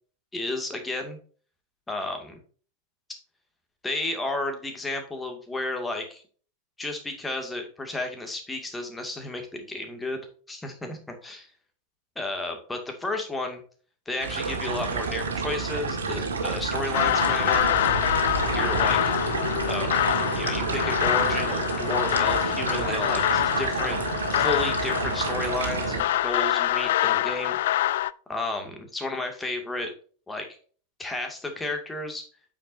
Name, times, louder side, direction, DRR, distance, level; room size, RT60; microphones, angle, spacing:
voice 1, 0.3-1.2 1.9-2.4 3.8-6.2 6.8-10.2 10.5-11.5 12.2-13.6 14.1-17.7 18.5-19.2 19.7-27.6 28.3-29.9 30.3-30.5 31.0-32.2, left 2 dB, 10° left, 4 dB, 2.2 m, -32 dB
sound 1, 14.2-26.0, right 4 dB, 65° right, 1.8 m, -29 dB
sound 2, 16.9-28.1, left 14 dB, 55° left, 0.3 m, -25 dB
9.0 x 7.1 x 2.7 m, 0.41 s
figure-of-eight pair, 90°, 0 cm